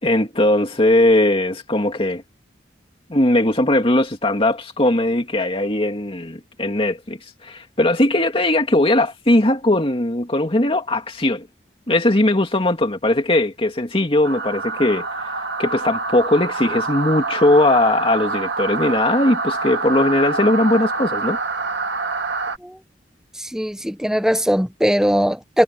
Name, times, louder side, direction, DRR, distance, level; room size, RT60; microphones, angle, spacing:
voice 1, 0.0-2.2 3.1-11.5 11.9-15.1 15.6-21.4, left 1 dB, 30° left, 2.5 m, -19 dB
sound 1, 14.2-22.6, right 3 dB, 80° right, 1.6 m, -26 dB
voice 2, 23.4-25.6, equal, 5° right, 1.0 m, -20 dB
head